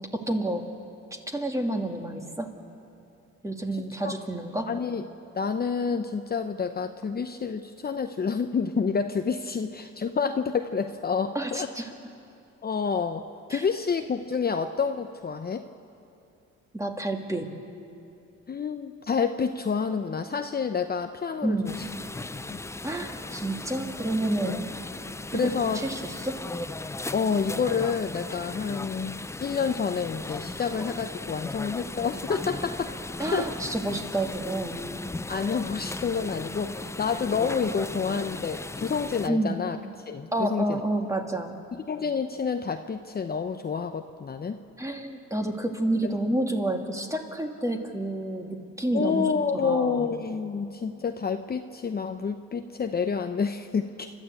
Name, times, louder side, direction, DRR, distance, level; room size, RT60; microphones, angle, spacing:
voice 1, 0.1-0.7 1.1-2.5 3.4-4.8 11.3-11.9 13.5-13.6 16.7-17.5 21.4-21.7 22.8-24.7 25.3-26.4 33.2-34.9 39.3-39.6 40.3-41.6 44.8-50.1, right 1 dB, 10° right, 3 dB, 2.3 m, -29 dB
voice 2, 3.7-4.1 4.7-5.0 5.3-11.7 12.6-15.7 18.5-21.7 22.3-22.6 25.3-25.8 27.1-32.9 33.3-33.5 35.3-39.8 40.1-40.8 41.7-44.6 46.0-46.1 48.9-54.1, left 5 dB, 30° left, 7 dB, 0.8 m, -28 dB
sound 1, 21.7-39.3, left 2 dB, 10° left, 0.4 m, -37 dB
29.5 x 13.0 x 8.4 m, 2.7 s
cardioid pair, 90°, 30 cm